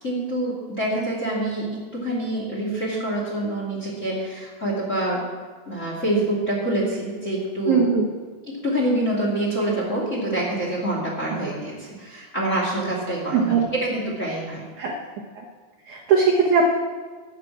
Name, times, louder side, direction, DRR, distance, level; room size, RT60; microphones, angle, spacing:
voice 1, 0.0-5.3 5.7-7.9 8.5-14.6, right 1 dB, 25° left, -3 dB, 1.9 m, -26 dB
voice 2, 7.7-8.0 13.3-13.6 14.8-14.9 15.3-15.4 15.9-16.6, right 6 dB, 80° right, -1 dB, 1.7 m, -19 dB
13.5 x 7.5 x 8.6 m, 1.5 s
omnidirectional pair, 5.3 m